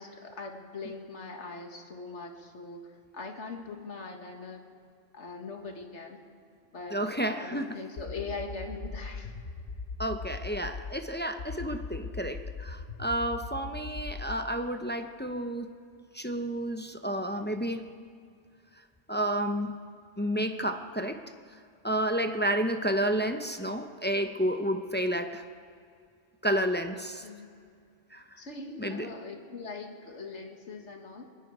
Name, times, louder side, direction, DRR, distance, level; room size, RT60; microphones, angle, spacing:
voice 1, 0.0-4.7 5.1-6.2 6.7-9.3 26.9-27.5 28.4-31.3, left 3 dB, 70° left, 3 dB, 2.0 m, -41 dB
voice 2, 6.9-7.8 10.0-15.7 16.1-17.9 19.1-19.8 20.2-21.2 21.8-25.4 26.4-27.2 28.1-28.2 28.8-29.1, right 1 dB, 10° left, 6 dB, 0.6 m, -30 dB
sound 1, 8.0-11.0 11.4-14.4, left 4 dB, 45° left, 1.2 m, -39 dB
27.5 x 20.5 x 4.8 m, 2.3 s
omnidirectional pair, 1.2 m